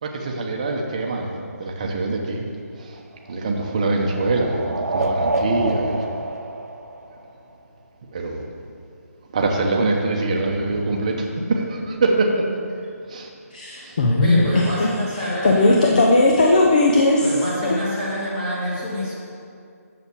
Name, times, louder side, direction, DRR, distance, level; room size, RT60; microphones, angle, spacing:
voice 1, 0.0-2.4 2.7-3.0 3.3-6.1 8.1-8.5 9.3-12.4 13.1-13.3 13.8-14.0, right 2 dB, 25° right, 1 dB, 0.9 m, -24 dB
sound 1, 2.8-7.6, right 2 dB, 70° right, 0.9 m, -28 dB
voice 2, 13.5-17.7, left 2 dB, 30° left, 0 dB, 0.7 m, -18 dB
voice 3, 14.2-15.8 17.2-19.1, equal, 10° left, -8 dB, 1.8 m, -27 dB
7.1 x 7.1 x 6.9 m, 2.4 s
hypercardioid pair, 175°, 9 cm